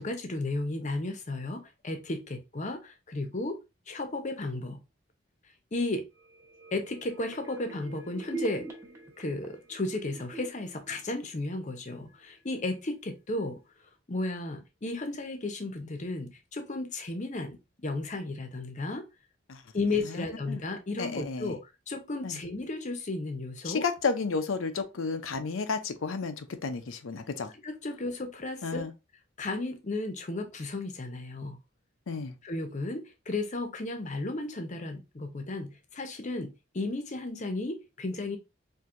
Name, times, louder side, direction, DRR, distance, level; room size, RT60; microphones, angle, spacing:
voice 1, 0.0-3.6 3.9-4.8 5.7-6.0 6.7-8.6 9.2-13.6 14.1-17.6 17.8-19.0 19.7-23.9 27.6-28.8 29.4-31.6 32.4-38.4, left 2 dB, 40° left, 0.7 m, -34 dB
sound 1, 6.1-11.8 12.2-12.3, right 3 dB, 15° right, 0.9 m, -44 dB
voice 2, 20.1-20.6 21.0-21.6 22.2-22.4 23.6-27.5 28.6-28.9 32.1-32.3, left 4 dB, 90° left, 0.6 m, -32 dB
4.4 x 2.7 x 2.5 m
head